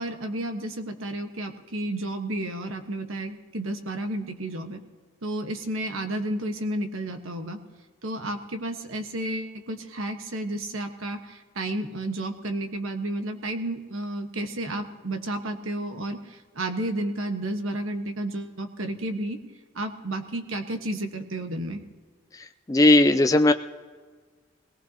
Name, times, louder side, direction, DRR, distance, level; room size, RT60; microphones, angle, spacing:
voice 1, 0.0-4.8 5.2-7.6 8.0-19.4 19.7-21.8, right 1 dB, 85° right, 5 dB, 1.3 m, -32 dB
voice 2, 22.7-23.5, left 2 dB, 15° left, 7 dB, 0.3 m, -17 dB
21.5 x 18.0 x 2.9 m, 1.5 s
head